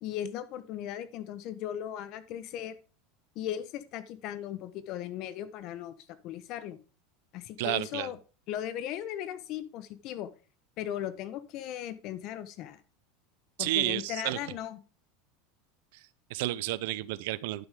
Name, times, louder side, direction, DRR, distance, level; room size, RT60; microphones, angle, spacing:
voice 1, 0.0-2.8 3.3-5.9 6.2-6.8 7.3-8.2 8.5-10.3 10.8-12.8 13.6-14.8, left 11 dB, 55° left, 1.1 m, -37 dB
voice 2, 7.6-8.1 13.6-14.4 15.9-17.7, right 16 dB, 70° right, 0.6 m, -31 dB
10.5 x 6.6 x 3.8 m
supercardioid pair, 105°, 0 cm